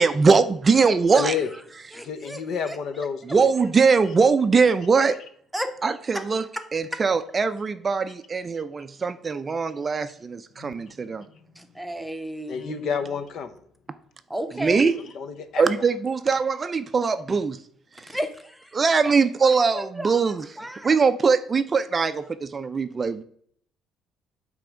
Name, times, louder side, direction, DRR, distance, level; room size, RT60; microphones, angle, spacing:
voice 1, 0.0-1.3 3.3-5.2 5.8-6.4 6.7-11.2 14.6-14.9 15.6-17.6 18.0-18.2 18.7-20.5 20.8-23.2, right 5 dB, 30° right, 0.4 m, -21 dB
voice 2, 1.2-1.5 1.9-3.5 10.6-10.7 11.3-11.4 12.5-13.6 14.7-15.8, left 6 dB, 60° left, 0.9 m, -31 dB
voice 3, 1.9-2.8 5.5-5.7 6.1-6.2 6.6-6.7 11.6-12.9 14.3-14.9 18.1-18.8 19.4-20.9, equal, 5° right, 0.8 m, -33 dB
8.4 x 3.4 x 6.3 m
cardioid pair, 130°, 0 cm